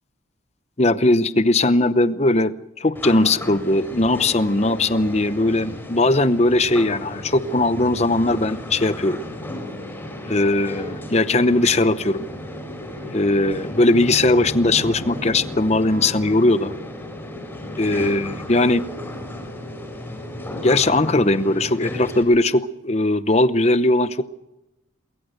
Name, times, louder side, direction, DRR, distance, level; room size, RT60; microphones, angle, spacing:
voice 1, 0.8-9.2 10.2-12.3 13.1-16.8 17.8-18.8 20.6-24.2, left 2 dB, 35° left, 13 dB, 0.8 m, -19 dB
sound 1, 2.9-22.2, left 1 dB, 10° left, 5.4 m, -34 dB
Guitar, 15.8-18.3, right 1 dB, 40° right, 6.9 m, -49 dB
23.0 x 21.5 x 6.7 m, 0.96 s
head